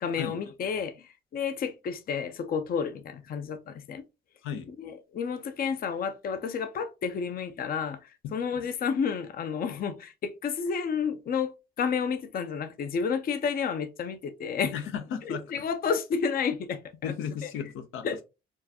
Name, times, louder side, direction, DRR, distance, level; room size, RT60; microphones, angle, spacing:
voice 1, 0.0-4.0 4.7-11.5 11.8-14.7 15.2-17.1 17.4-17.5 18.0-18.2, left 6 dB, 50° left, 0.5 m, -31 dB
voice 2, 14.7-15.4 17.0-18.1, left 7 dB, 85° left, 0.6 m, -34 dB
4.5 x 2.3 x 2.8 m
cardioid pair, 90°, 20 cm